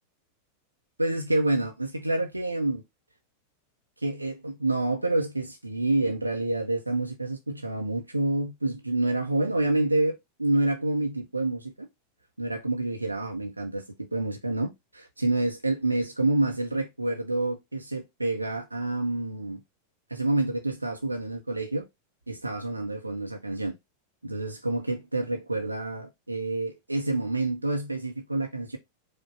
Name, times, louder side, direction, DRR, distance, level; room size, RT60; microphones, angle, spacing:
voice 1, 1.0-2.8 4.0-11.9 12.4-19.6 20.1-21.8 22.3-23.8 24.2-28.8, right 2 dB, 85° right, 0.6 m, -28 dB
4.9 x 2.2 x 4.3 m
figure-of-eight pair, 90°, 0 cm